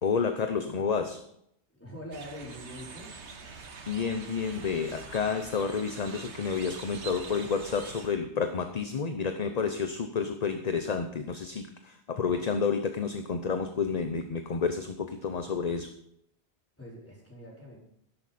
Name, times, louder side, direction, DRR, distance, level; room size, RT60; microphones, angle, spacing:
voice 1, 0.0-1.2 3.5-15.9, left 5 dB, 40° left, 7 dB, 0.8 m, -30 dB
voice 2, 1.7-3.1 16.8-17.8, equal, 10° left, -5 dB, 4.7 m, -44 dB
sound 1, 2.1-8.1, right 5 dB, 90° right, 1.6 m, -44 dB
12.5 x 11.5 x 4.3 m, 0.72 s
omnidirectional pair, 1.1 m